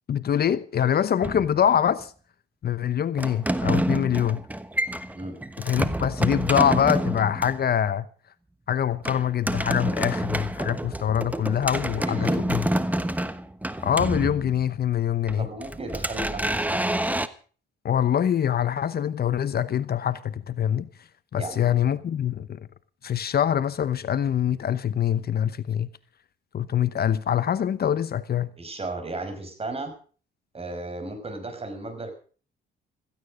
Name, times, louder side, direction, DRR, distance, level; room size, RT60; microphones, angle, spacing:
voice 1, 0.1-2.1 2.6-4.4 5.6-8.1 8.7-12.6 13.8-15.5 17.8-20.9 21.3-22.6 23.0-25.9 26.5-28.5, left 9 dB, 50° left, 1.0 m, -24 dB
sound 1, 1.2-2.0 3.2-7.6 9.0-14.8 15.3-17.3, right 1 dB, 10° right, 1.2 m, -28 dB
voice 2, 11.9-12.5 15.4-17.1 21.4-21.7 28.6-29.9 30.5-32.1, right 2 dB, 30° right, 5.6 m, -35 dB
16.5 x 15.0 x 5.1 m
cardioid pair, 90°, 20 cm